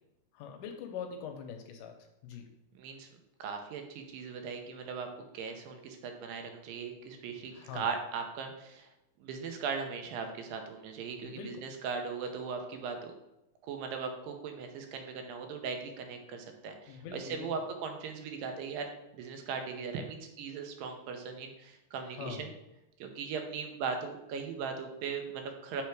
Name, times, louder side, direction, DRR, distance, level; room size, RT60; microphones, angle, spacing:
voice 1, 0.3-1.9 2.2-2.5 7.5-7.9 11.2-11.5 16.9-17.5 22.1-22.5, left 7 dB, 80° left, 4 dB, 2.0 m, -42 dB
voice 2, 2.7-3.1 3.4-5.1 5.3-8.9 9.2-13.1 13.6-22.5 23.0-25.8, right 5 dB, 85° right, 4 dB, 2.5 m, -39 dB
7.4 x 3.5 x 4.7 m, 0.91 s
omnidirectional pair, 4.0 m